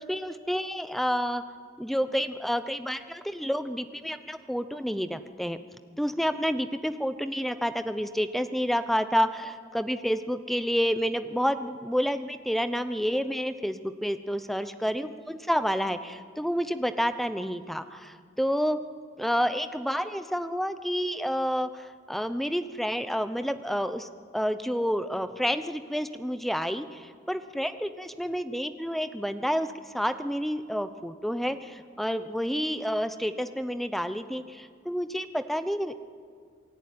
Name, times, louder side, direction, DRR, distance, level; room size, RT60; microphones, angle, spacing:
voice 1, 0.0-1.4 1.8-5.6 6.0-18.8 19.2-29.7 29.9-36.0, equal, ahead, 11 dB, 0.8 m, -29 dB
27.5 x 18.5 x 9.6 m, 2.1 s
head